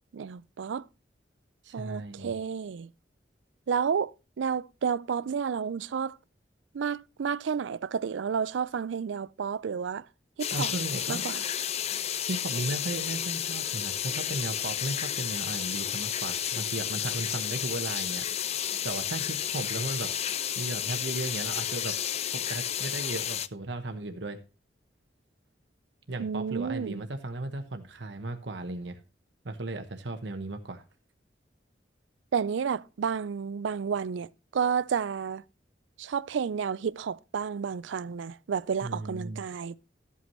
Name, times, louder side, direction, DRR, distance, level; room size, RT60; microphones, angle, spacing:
voice 1, 0.1-0.9 1.7-2.9 3.7-4.1 4.4-6.2 6.7-10.1 10.4-10.7 11.1-11.4 26.2-27.0 32.3-35.4 36.0-39.7, right 6 dB, 90° right, 0.4 m, -31 dB
voice 2, 1.6-2.3 10.5-11.2 12.3-20.1 20.6-22.0 22.3-24.4 26.1-29.0 29.4-30.8 38.8-39.4, right 2 dB, 75° right, 1.1 m, -36 dB
sound 1, 10.4-23.5, left 10 dB, 35° left, 0.4 m, -32 dB
13.0 x 8.3 x 3.1 m
head